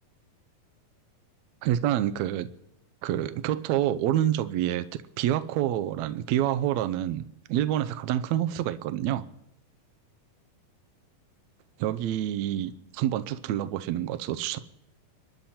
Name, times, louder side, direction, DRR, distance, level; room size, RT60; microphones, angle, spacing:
voice 1, 1.6-2.5 3.0-4.9 5.2-7.2 7.5-9.3 11.8-14.6, right 12 dB, 75° right, 12 dB, 1.7 m, -27 dB
27.0 x 10.5 x 4.3 m, 0.84 s
omnidirectional pair, 3.8 m